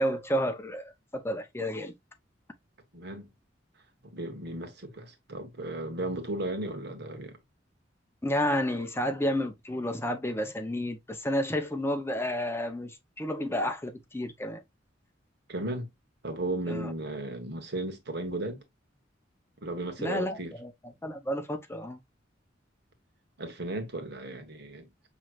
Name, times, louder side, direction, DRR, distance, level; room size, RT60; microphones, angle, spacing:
voice 1, 0.0-1.9 8.2-14.6 16.7-16.9 20.0-20.7 21.0-22.0, equal, 15° left, 0.6 m, -31 dB
voice 2, 2.9-3.3 4.1-7.4 15.5-15.9 16.2-18.6 19.6-20.5 23.4-24.9, right 1 dB, 60° right, 1.3 m, -35 dB
6.1 x 3.1 x 2.4 m
head